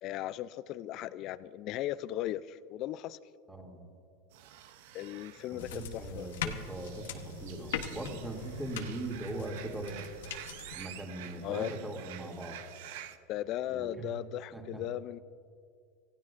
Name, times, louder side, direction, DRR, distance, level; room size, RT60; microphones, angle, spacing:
voice 1, 0.0-3.2 4.9-6.3 11.4-11.7 13.3-15.2, left 13 dB, 50° left, 17 dB, 0.5 m, -37 dB
voice 2, 3.5-3.8 5.5-10.1 10.7-12.6 13.6-14.1 14.5-14.8, right 2 dB, 10° right, 1 dB, 2.6 m, -40 dB
sound 1, 4.3-13.2, right 11 dB, 70° right, 0.7 m, -49 dB
sound 2, 5.6-10.8, left 8 dB, 80° left, 1.1 m, -41 dB
26.5 x 15.5 x 2.6 m, 2.4 s
hypercardioid pair, 100°, 0 cm